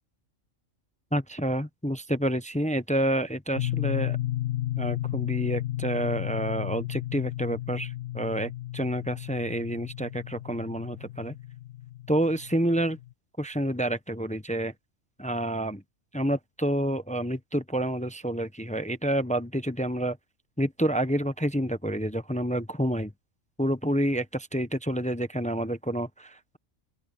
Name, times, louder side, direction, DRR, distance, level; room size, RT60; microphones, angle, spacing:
voice 1, 1.1-4.2 4.8-11.3 12.1-13.0 13.4-14.7 15.2-15.8 16.1-20.2 20.6-23.1 23.6-26.6, right 1 dB, 10° left, 0.5 m, -28 dB
sound 1, 3.6-13.1, left 14 dB, 80° left, 1.4 m, -33 dB
open air
omnidirectional pair, 1.4 m